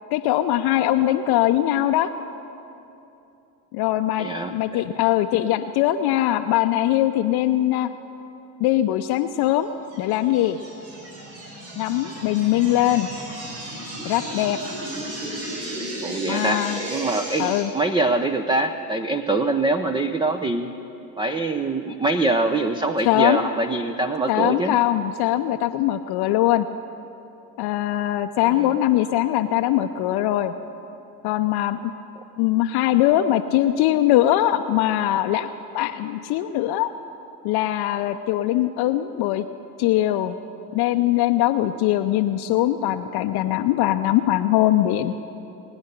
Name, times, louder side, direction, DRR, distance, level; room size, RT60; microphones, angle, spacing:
voice 1, 0.1-2.1 3.7-7.9 8.6-9.7 10.0-10.6 11.8-13.1 14.0-14.6 16.3-16.8 17.4-17.7 23.1-23.5 24.3-26.7 27.6-30.5 31.2-31.8 32.4-36.9 37.4-39.5 39.8-40.4 40.7-45.1, left 13 dB, 50° left, 7 dB, 0.7 m, -21 dB
voice 2, 4.2-4.8 16.0-20.7 21.2-24.8 28.5-28.7, right 2 dB, 10° right, 8 dB, 0.5 m, -24 dB
sound 1, 9.9-17.6, right 1 dB, 75° right, 4.2 m, -34 dB
20.5 x 9.8 x 6.7 m, 2.8 s
hypercardioid pair, 75°, 50 cm